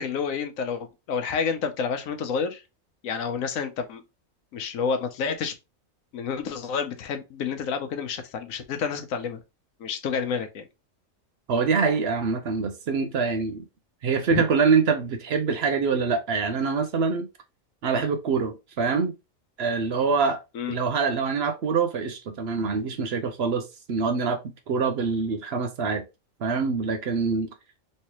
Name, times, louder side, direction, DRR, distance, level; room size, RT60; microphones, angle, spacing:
voice 1, 0.0-2.6 3.0-4.0 4.5-5.5 6.1-9.4 9.8-10.7 14.3-14.4 20.5-20.7, left 6 dB, 85° left, 1.1 m, -29 dB
voice 2, 11.5-13.6 14.0-17.3 17.8-19.1 19.6-20.4 20.7-24.4 24.7-26.0 26.4-27.5, right 5 dB, 60° right, 0.8 m, -25 dB
3.2 x 3.2 x 2.9 m
omnidirectional pair, 1.4 m